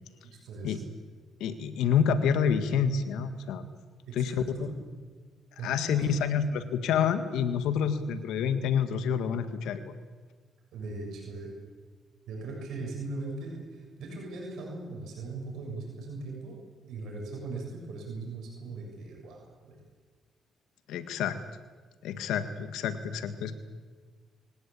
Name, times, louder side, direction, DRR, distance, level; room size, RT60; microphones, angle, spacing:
voice 1, 0.2-0.9 4.1-4.7 5.6-6.2 10.7-11.6 12.3-16.6 16.9-19.8, right 3 dB, 75° right, 0 dB, 7.1 m, -39 dB
voice 2, 1.4-3.7 4.2-4.3 5.6-9.9 20.9-21.4 22.0-23.6, left 7 dB, 85° left, 10 dB, 1.8 m, -28 dB
25.0 x 17.5 x 8.6 m, 1.5 s
cardioid pair, 90°, 0 cm